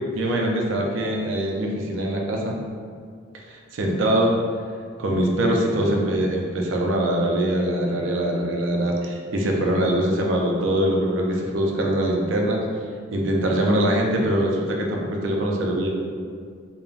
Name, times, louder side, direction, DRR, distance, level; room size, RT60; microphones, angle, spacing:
voice 1, 0.1-2.6 3.5-4.3 5.0-12.6 13.1-15.9, right 1 dB, 75° right, 0 dB, 0.4 m, -23 dB
3.2 x 2.1 x 2.4 m, 2.1 s
head